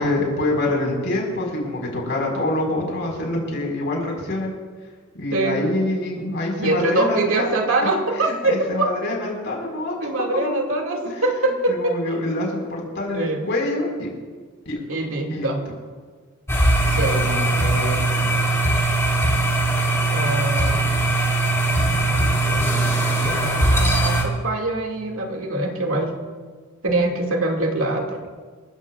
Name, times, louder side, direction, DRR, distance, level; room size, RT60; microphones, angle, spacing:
voice 1, 0.0-4.5 5.1-7.5 7.8-10.5 11.0-14.1 14.6-14.8 15.3-15.5 17.0-18.3, left 2 dB, 55° left, -1 dB, 5.0 m, -26 dB
voice 2, 6.6-8.9 10.0-12.2 13.1-13.5 14.9-15.6 16.9-17.3 20.1-20.8 21.9-22.6 23.3-26.1 26.8-28.2, right 2 dB, 70° right, 1 dB, 2.3 m, -24 dB
sound 1, 16.5-24.2, right 2 dB, 15° left, 2.6 m, -20 dB
28.0 x 15.0 x 2.5 m, 1.5 s
head